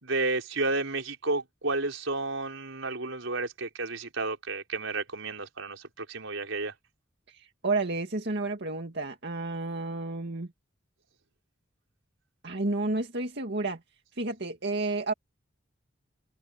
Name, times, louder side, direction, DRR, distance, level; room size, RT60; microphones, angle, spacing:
voice 1, 0.0-6.7, right 3 dB, 90° right, 4.7 m, -31 dB
voice 2, 7.3-10.5 12.4-13.8 14.2-15.1, right 2 dB, 60° right, 2.2 m, -31 dB
head